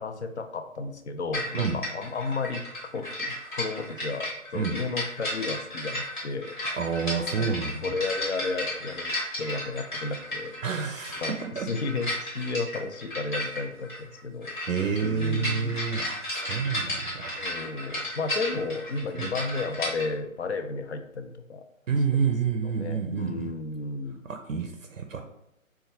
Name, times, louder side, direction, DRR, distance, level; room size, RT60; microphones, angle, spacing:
voice 1, 0.0-2.7 2.9-6.5 7.3-7.6 7.8-10.6 11.2-11.3 11.6-14.6 15.0-15.8 17.3-21.6 22.1-22.3 22.6-24.2, left 3 dB, 55° left, 6 dB, 0.5 m, -33 dB
sound 1, 1.3-20.1, left 1 dB, 35° left, 0.9 m, -34 dB
voice 2, 6.7-7.9 10.6-11.2 11.6-11.7 14.7-17.4 19.1-19.3 21.9-23.5 24.3-25.2, right 6 dB, 70° right, 5 dB, 0.5 m, -28 dB
4.3 x 2.3 x 2.7 m, 0.79 s
figure-of-eight pair, 155°, 41 cm